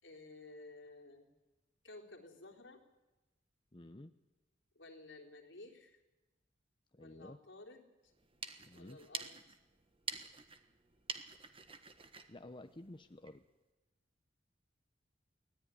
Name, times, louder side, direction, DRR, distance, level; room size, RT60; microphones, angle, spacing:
voice 1, 0.0-1.3 1.8-2.8 4.7-6.0 7.0-8.1 8.7-9.6, left 2 dB, 80° left, 1 dB, 3.6 m, -54 dB
voice 2, 3.7-4.1 6.9-7.4 8.6-9.0 12.3-13.4, left 1 dB, 25° left, 7 dB, 0.8 m, -52 dB
sound 1, 8.1-13.4, right 5 dB, 30° right, 1.4 m, -48 dB
23.5 x 17.5 x 9.9 m, 1.1 s
head